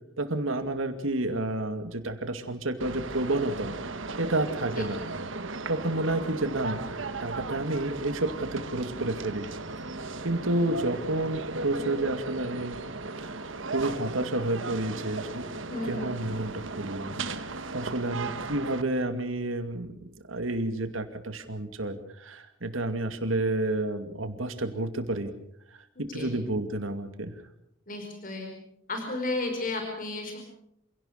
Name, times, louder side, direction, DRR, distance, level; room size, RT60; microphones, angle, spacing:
voice 1, 0.2-3.7 4.2-5.0 5.7-9.5 10.2-12.8 13.2-13.4 13.7-15.5 15.8-19.9 20.3-25.3 26.0-27.3, right 2 dB, 90° right, 8 dB, 2.5 m, -30 dB
sound 1, 2.8-18.8, right 3 dB, 75° right, 1.5 m, -36 dB
voice 2, 15.7-16.2 25.9-26.3 27.9-28.5 28.9-30.4, left 2 dB, 45° left, 3 dB, 4.9 m, -33 dB
27.5 x 17.5 x 6.7 m, 0.77 s
head